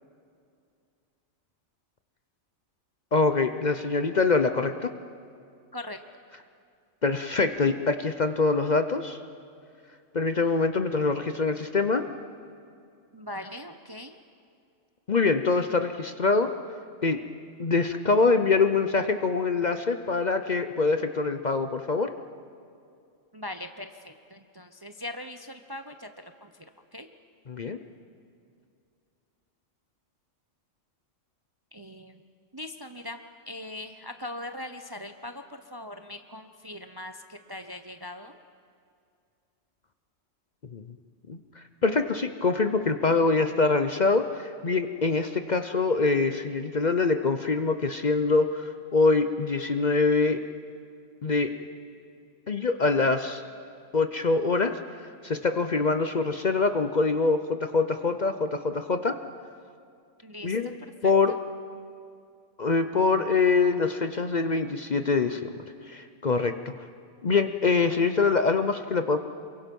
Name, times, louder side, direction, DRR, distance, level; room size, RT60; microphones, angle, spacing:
voice 1, 3.1-4.9 7.0-9.2 10.1-12.0 15.1-16.5 17.0-17.2 17.6-22.1 27.5-27.8 40.7-40.8 41.3-41.4 41.8-50.4 51.2-51.5 52.5-53.4 53.9-54.7 55.0-59.2 60.4-60.7 61.0-61.3 62.6-65.5 65.9-66.7 67.2-69.2, left 4 dB, 40° left, 8 dB, 0.8 m, -24 dB
voice 2, 13.1-14.2 23.3-26.6 26.9-27.1 31.7-32.2 32.5-38.4 60.2-61.4, left 1 dB, 25° right, 7 dB, 0.6 m, -41 dB
28.0 x 22.5 x 5.4 m, 2.4 s
omnidirectional pair, 1.3 m